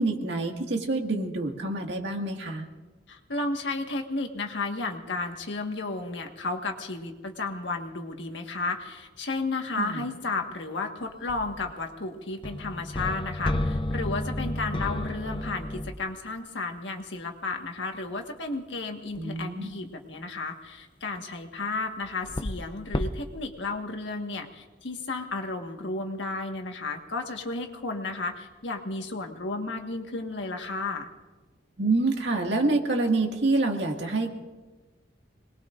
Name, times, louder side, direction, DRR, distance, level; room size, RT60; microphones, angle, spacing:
voice 1, 0.0-2.7 9.8-10.0 19.2-19.7 31.8-34.3, right 2 dB, 70° right, 2 dB, 2.0 m, -27 dB
voice 2, 3.1-31.1, left 3 dB, 85° left, 3 dB, 1.6 m, -33 dB
sound 1, 11.3-11.7 12.4-16.1 19.2-19.3 22.0-22.6 22.9-23.1, left 1 dB, 30° left, 0.7 m, -31 dB
26.5 x 20.5 x 2.6 m, 1.2 s
head